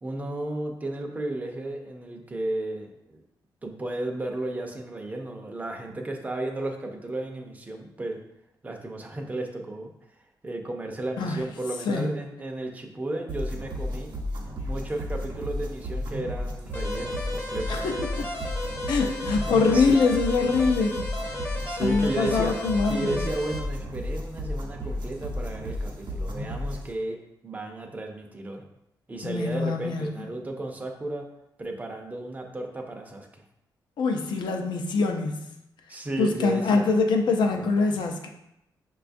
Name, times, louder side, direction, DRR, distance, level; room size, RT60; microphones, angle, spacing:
voice 1, 0.0-3.2 3.6-8.2 8.6-9.9 10.4-14.1 14.7-17.8 18.4-18.5 19.7-20.0 21.6-22.5 22.9-27.2 27.4-28.6 29.1-31.3 31.6-33.4 35.9-36.9 37.5-38.0, right 2 dB, 20° right, 2 dB, 0.5 m, -33 dB
voice 2, 11.9-12.2 17.7-18.3 18.9-21.4 21.8-23.2 29.2-30.2 34.0-35.5 36.2-38.3, left 4 dB, 75° left, 3 dB, 0.5 m, -24 dB
sound 1, 13.3-26.9, left 1 dB, 75° right, 0.8 m, -33 dB
sound 2, 16.7-23.6, left 1 dB, 25° left, 0.7 m, -34 dB
5.7 x 2.3 x 2.6 m, 0.84 s
cardioid pair, 115°, 8 cm